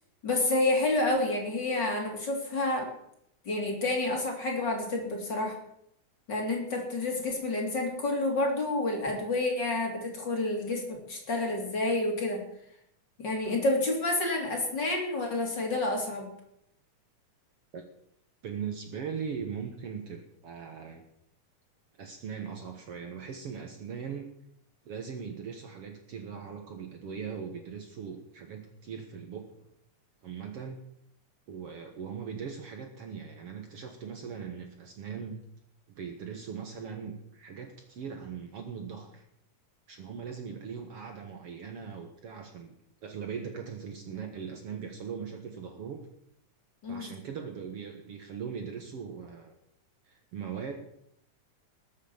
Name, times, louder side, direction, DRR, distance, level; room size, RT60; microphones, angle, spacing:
voice 1, 0.2-2.9 3.5-5.6 6.3-12.4 13.2-16.3 46.8-47.1, left 2 dB, 35° left, 1 dB, 3.7 m, -29 dB
voice 2, 18.4-21.0 22.0-24.3 24.9-29.5 30.2-30.8 31.5-35.4 36.0-39.2 39.9-42.7 43.0-46.0 46.9-49.5 50.1-50.7, right 6 dB, 55° right, 4 dB, 2.1 m, -40 dB
20.0 x 8.0 x 7.2 m, 0.74 s
omnidirectional pair, 3.5 m